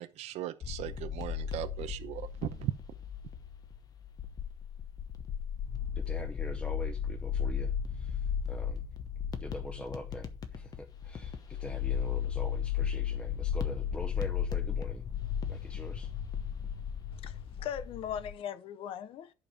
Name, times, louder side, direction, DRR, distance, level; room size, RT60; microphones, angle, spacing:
voice 1, 0.0-2.7, right 13 dB, 70° right, 0.7 m, -37 dB
sound 1, 0.6-18.3, left 8 dB, 35° left, 1.0 m, -35 dB
voice 2, 6.0-8.8 9.4-15.0 15.5-16.1, left 1 dB, 10° left, 0.7 m, -44 dB
voice 3, 17.1-19.3, left 9 dB, 55° left, 0.7 m, -39 dB
11.0 x 5.4 x 4.8 m
cardioid pair, 175°, 12 cm